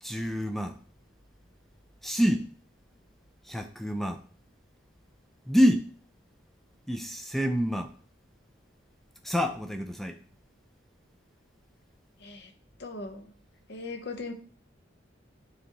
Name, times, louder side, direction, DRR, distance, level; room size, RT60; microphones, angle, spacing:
voice 1, 0.0-0.8 2.0-2.5 3.5-4.2 5.5-5.9 6.9-7.9 9.2-10.2, equal, ahead, 0.4 m, -27 dB
voice 2, 12.2-12.5 12.8-13.3 13.7-14.3, left 3 dB, 60° left, 0.8 m, -39 dB
9.5 x 3.6 x 2.9 m
head